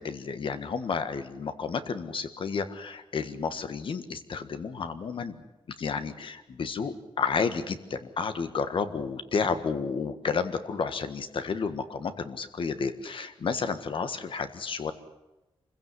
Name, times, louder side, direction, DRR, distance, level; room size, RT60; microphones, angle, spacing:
voice 1, 0.0-5.4 5.8-14.9, left 5 dB, 60° left, 10 dB, 1.7 m, -31 dB
26.0 x 16.0 x 10.0 m, 1.0 s
wide cardioid pair, 155°, 10 cm